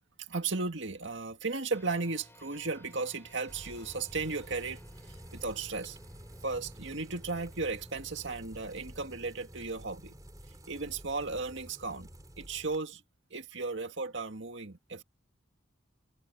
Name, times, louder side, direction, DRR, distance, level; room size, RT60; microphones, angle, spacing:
voice 1, 0.2-6.0 6.4-10.2 10.7-12.1 12.4-13.0 13.3-15.0, right 3 dB, 65° right, 2.0 m, -35 dB
sound 1, 1.7-11.4, equal, 10° left, 5.6 m, -57 dB
sound 2, 3.5-12.8, equal, 20° right, 4.0 m, -50 dB
head